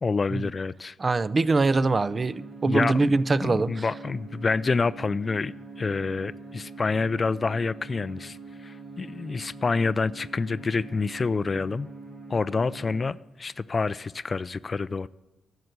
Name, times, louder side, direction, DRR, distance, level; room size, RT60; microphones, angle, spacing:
voice 1, 0.0-1.0 2.7-11.9 12.3-15.1, left 4 dB, 40° left, 0.3 m, -28 dB
voice 2, 1.0-3.8, right 3 dB, 40° right, 0.4 m, -23 dB
sound 1, 2.0-13.0, right 3 dB, 65° right, 3.6 m, -43 dB
11.0 x 6.6 x 7.9 m
supercardioid pair, 50°, 0 cm